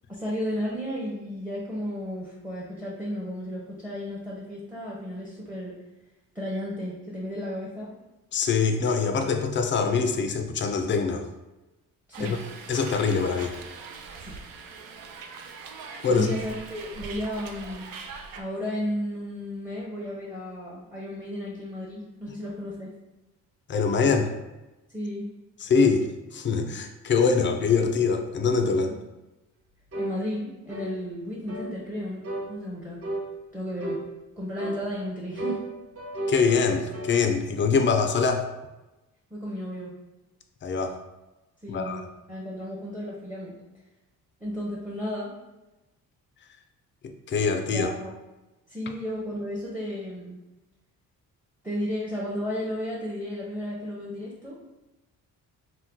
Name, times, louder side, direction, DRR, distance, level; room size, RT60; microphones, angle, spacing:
voice 1, 0.1-5.7 6.3-7.9 12.1-12.4 14.2-14.4 15.4-15.5 16.1-17.9 18.4-22.9 24.9-25.3 30.0-32.2 32.5-33.0 33.5-34.0 34.4-35.6 39.3-39.9 41.6-42.0 42.3-43.5 44.4-45.3 47.7-48.1 48.7-50.4 51.6-54.6, equal, 5° right, -6 dB, 0.7 m, -33 dB
voice 2, 8.3-11.3 12.2-12.4 12.7-13.6 16.0-16.3 23.7-24.3 25.6-26.1 26.3-29.0 36.3-38.5 40.6-40.9 41.7-42.1 47.3-47.9, left 5 dB, 35° left, 6 dB, 0.4 m, -24 dB
Hiss, 12.1-18.4, right 5 dB, 70° right, 0.5 m, -42 dB
sound 1, 29.9-30.2 30.7-31.0 31.5-31.7 32.2-32.5 33.0-33.3 33.8-34.1 34.6-34.8 35.4-37.2, right 1 dB, 40° right, 0.8 m, -33 dB
2.8 x 2.2 x 3.6 m, 1.0 s
cardioid pair, 85°, 36 cm